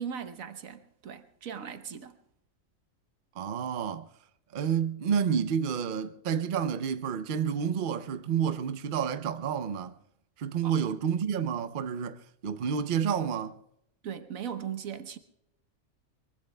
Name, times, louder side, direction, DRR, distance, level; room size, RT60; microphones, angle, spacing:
voice 1, 0.0-2.1 10.6-10.7 14.0-15.2, right 8 dB, 85° right, 1.4 m, -38 dB
voice 2, 3.4-4.1 4.5-10.0 10.4-13.6, right 7 dB, 50° right, 0.7 m, -29 dB
23.5 x 23.0 x 2.2 m
omnidirectional pair, 1.4 m